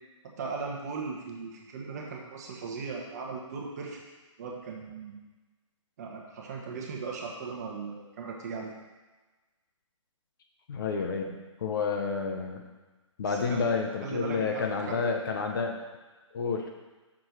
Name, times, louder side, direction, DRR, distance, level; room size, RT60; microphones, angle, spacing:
voice 1, 0.4-4.0 4.4-5.2 6.0-8.7 13.3-13.7 14.0-15.0, right 4 dB, 30° right, 0 dB, 1.2 m, -38 dB
voice 2, 10.7-12.6 13.2-15.8 16.3-16.6, left 5 dB, 40° left, 3 dB, 0.9 m, -30 dB
6.2 x 4.4 x 6.5 m, 1.2 s
hypercardioid pair, 160°, 17 cm